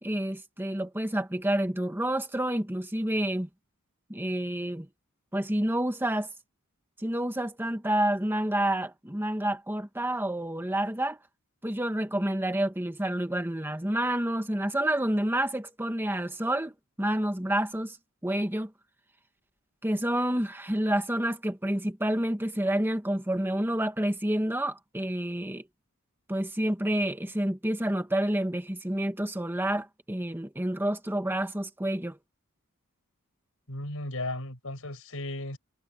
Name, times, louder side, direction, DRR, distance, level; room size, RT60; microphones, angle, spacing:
voice 1, 0.0-3.5 4.1-4.9 5.3-6.3 7.0-11.2 11.6-18.0 18.2-18.7 19.8-25.6 26.3-32.2, right 1 dB, 10° right, 1.6 m, -29 dB
voice 2, 33.7-35.6, left 2 dB, 70° left, 7.4 m, -35 dB
head